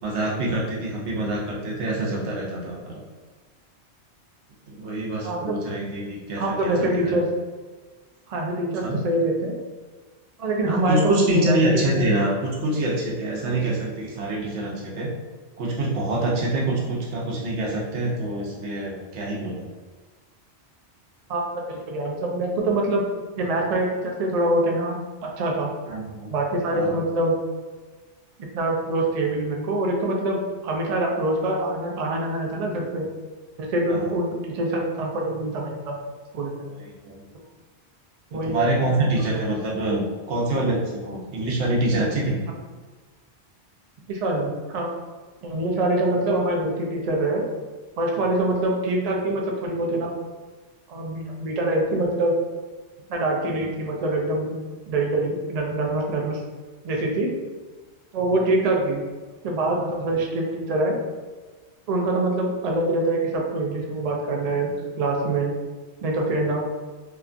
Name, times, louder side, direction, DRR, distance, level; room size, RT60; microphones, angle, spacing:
voice 1, 0.0-3.0 4.7-7.2 8.8-9.0 10.7-15.1 15.6-19.7 25.9-26.3 26.7-26.9 33.9-34.1 36.8-37.2 38.4-40.0 40.3-42.4 48.2-48.3, right 2 dB, 80° right, -3 dB, 1.0 m, -25 dB
voice 2, 5.2-5.6 6.4-7.3 8.3-9.5 10.4-11.6 11.9-12.1 21.3-23.1 23.4-25.0 25.2-25.7 26.3-27.4 28.4-33.1 33.6-35.9 36.3-36.6 38.3-38.5 44.1-44.9 45.4-47.4 48.0-50.1 50.9-52.4 53.1-54.6 54.9-56.4 56.8-57.3 58.1-59.0 59.4-61.0 61.9-65.5 66.0-66.7, right 2 dB, 55° right, -1 dB, 0.4 m, -24 dB
2.8 x 2.3 x 2.4 m, 1.3 s
omnidirectional pair, 1.2 m